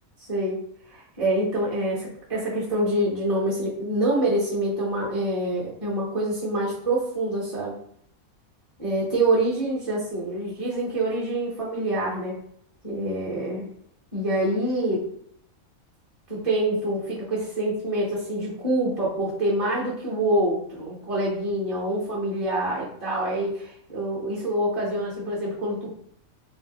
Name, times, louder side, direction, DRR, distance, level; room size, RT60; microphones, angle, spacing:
voice 1, 0.2-7.7 8.8-12.4 12.8-13.7 14.1-15.1 16.3-25.9, right 1 dB, 30° right, -7 dB, 0.7 m, -26 dB
2.6 x 2.2 x 3.8 m, 0.69 s
omnidirectional pair, 1.5 m